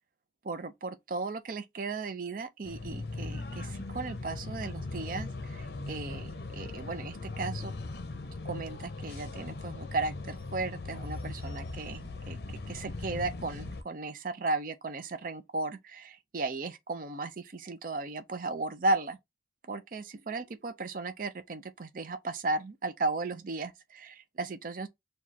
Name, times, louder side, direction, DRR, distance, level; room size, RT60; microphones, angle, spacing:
voice 1, 0.4-7.7 8.5-19.2 19.7-24.9, right 3 dB, 50° right, 0.5 m, -35 dB
sound 1, 2.6-13.8, left 3 dB, 55° left, 0.6 m, -39 dB
4.8 x 2.3 x 2.7 m
head